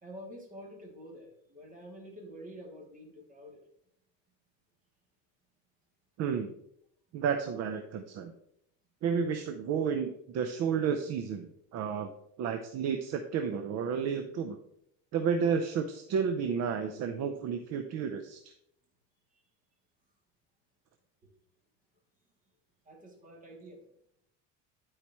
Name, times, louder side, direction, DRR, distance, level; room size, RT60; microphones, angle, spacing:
voice 1, 0.0-3.6 19.3-19.4 21.2-21.3 22.8-23.8, equal, 25° right, -2 dB, 2.7 m, -48 dB
voice 2, 6.2-6.5 7.1-8.3 9.0-12.1 12.4-14.6 15.1-18.5, right 6 dB, 50° right, 7 dB, 0.7 m, -31 dB
12.0 x 4.9 x 3.1 m, 0.74 s
cardioid pair, 135°, 32 cm